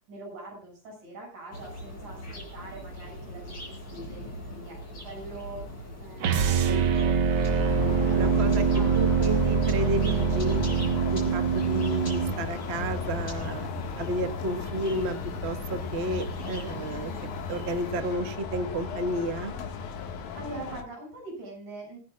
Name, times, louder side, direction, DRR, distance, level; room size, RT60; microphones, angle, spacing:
voice 1, 0.1-5.6 6.0-7.6 8.0-9.3 16.8-17.3 19.9-22.0, right 2 dB, 85° right, 1 dB, 8.3 m, -44 dB
sound 1, 1.5-18.0, equal, 35° left, 6.6 m, -42 dB
sound 2, 6.2-12.4, right 6 dB, 55° right, 1.6 m, -24 dB
sound 3, 7.2-20.8, left 5 dB, 90° left, 3.2 m, -36 dB
voice 2, 8.1-10.6 11.1-13.7 14.0-15.2 15.4-17.1 17.5-19.5, right 1 dB, 35° right, 9 dB, 1.1 m, -31 dB
27.0 x 10.5 x 2.4 m, 0.30 s
omnidirectional pair, 3.4 m